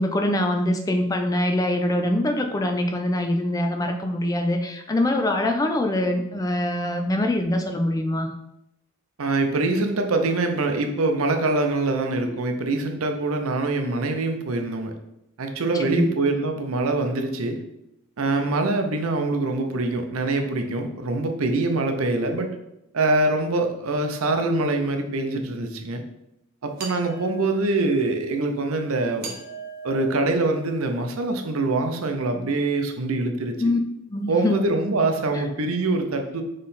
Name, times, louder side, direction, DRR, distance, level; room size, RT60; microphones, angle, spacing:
voice 1, 0.0-8.3 15.8-16.1 33.6-33.8 34.1-34.5 35.3-35.4, left 1 dB, 15° left, 5 dB, 0.3 m, -24 dB
voice 2, 9.2-15.0 15.4-17.6 18.2-22.5 22.9-26.0 26.6-29.3 29.8-33.6 34.3-36.4, right 2 dB, 80° right, 5 dB, 0.6 m, -24 dB
sound 1, 26.8-27.9 29.2-31.1, right 5 dB, 45° right, 1.0 m, -39 dB
3.8 x 3.2 x 4.1 m, 0.85 s
head